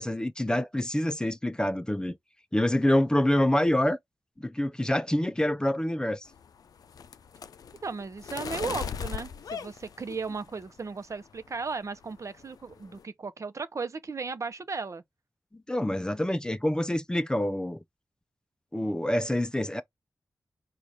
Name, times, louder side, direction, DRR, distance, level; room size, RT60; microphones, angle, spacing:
voice 1, 0.0-2.2 2.5-4.0 4.4-6.3 15.5-17.8 18.7-19.8, left 1 dB, 15° left, 0.5 m, -26 dB
sound 1, 6.3-10.7 11.1-11.6 11.8-12.1 12.4-13.0, left 7 dB, 90° left, 0.4 m, -39 dB
voice 2, 7.8-15.0, right 4 dB, 55° right, 0.8 m, -36 dB
4.8 x 2.4 x 4.2 m
cardioid pair, 60°, 6 cm